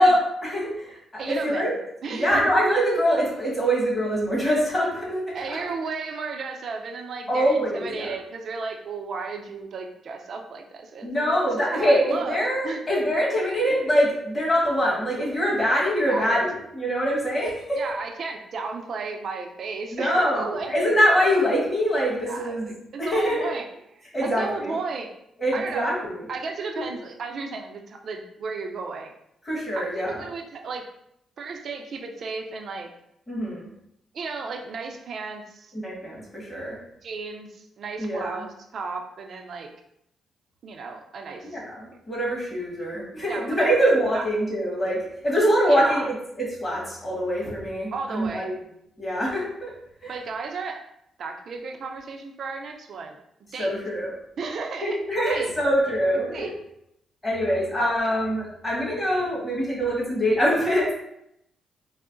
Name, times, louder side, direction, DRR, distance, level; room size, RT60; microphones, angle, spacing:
voice 1, 0.0-1.7 2.1-5.6 7.3-8.1 11.0-17.9 19.9-22.7 23.0-23.5 24.1-24.6 25.4-26.2 26.7-26.8 29.4-30.2 33.3-33.7 35.8-36.8 38.0-38.4 41.4-48.5 49.0-49.7 50.0-50.1 53.6-54.1 54.8-56.5 57.2-60.9, equal, 20° left, -5 dB, 1.4 m, -24 dB
voice 2, 1.2-1.7 2.0-2.3 5.3-12.4 12.6-12.8 13.4-13.5 16.1-16.3 17.8-20.9 22.3-23.6 24.0-25.1 25.5-25.9 26.3-29.1 29.8-30.8 31.4-32.9 34.1-35.7 37.0-39.7 40.6-41.6 43.3-44.2 45.7-46.1 47.9-48.5 50.1-50.8 51.2-53.2 53.5-53.8 54.4-55.0 55.3-55.5 56.3-56.5 57.7-58.1, right 4 dB, 60° right, 3 dB, 0.5 m, -34 dB
4.5 x 2.0 x 2.5 m, 0.77 s
cardioid pair, 75°, 0 cm